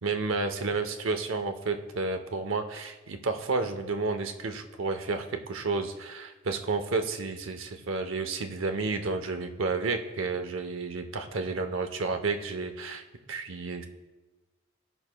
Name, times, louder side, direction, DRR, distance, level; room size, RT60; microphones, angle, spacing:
voice 1, 0.0-13.9, right 3 dB, 70° right, 7 dB, 0.8 m, -31 dB
17.0 x 6.0 x 2.2 m, 1.2 s
head